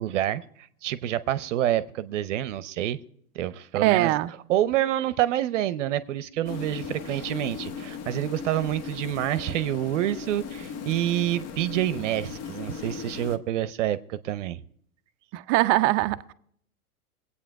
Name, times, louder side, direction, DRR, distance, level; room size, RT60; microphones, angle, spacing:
voice 1, 0.0-3.0 3.3-4.1 4.5-14.6, right 12 dB, 55° right, 0.8 m, -27 dB
voice 2, 3.7-4.3 15.3-16.3, right 17 dB, 30° right, 0.5 m, -22 dB
sound 1, 6.4-13.4, left 6 dB, 35° left, 1.1 m, -37 dB
21.5 x 8.6 x 4.7 m
hypercardioid pair, 110°, 44 cm